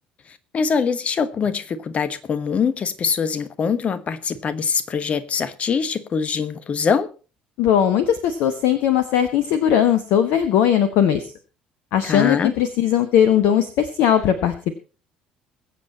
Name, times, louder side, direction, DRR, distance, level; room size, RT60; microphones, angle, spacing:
voice 1, 0.5-7.1 12.0-12.5, left 6 dB, 35° left, 1.3 m, -23 dB
voice 2, 7.6-11.3 11.9-14.5, left 9 dB, 60° left, 1.1 m, -19 dB
22.0 x 7.7 x 4.2 m
figure-of-eight pair, 55°, 4 cm